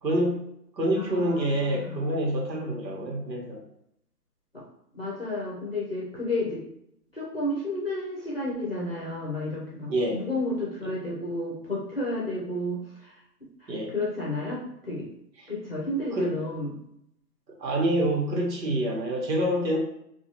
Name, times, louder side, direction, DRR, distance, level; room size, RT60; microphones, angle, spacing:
voice 1, 0.0-0.4 0.8-3.6 9.9-10.2 13.7-13.9 15.4-15.5 16.1-16.4 17.6-19.8, right 1 dB, 85° right, -1 dB, 1.1 m, -26 dB
voice 2, 1.0-2.0 4.5-4.6 4.9-6.6 7.1-13.2 13.6-15.1 15.5-16.8, left 1 dB, 40° left, -5 dB, 0.6 m, -32 dB
2.4 x 2.4 x 2.9 m, 0.76 s
hypercardioid pair, 170°, 50 cm